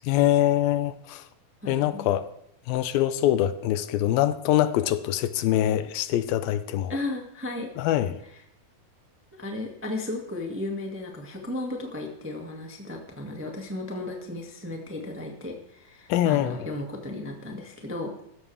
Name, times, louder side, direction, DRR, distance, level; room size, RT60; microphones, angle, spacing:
voice 1, 0.0-1.2 1.7-2.2 2.7-7.0 7.8-8.2 16.1-16.7, left 12 dB, 80° left, 2.5 m, -24 dB
voice 2, 1.6-2.1 6.9-7.7 8.2-8.4 9.4-18.2, left 2 dB, 10° right, 0.9 m, -35 dB
15.0 x 13.5 x 3.5 m
omnidirectional pair, 4.2 m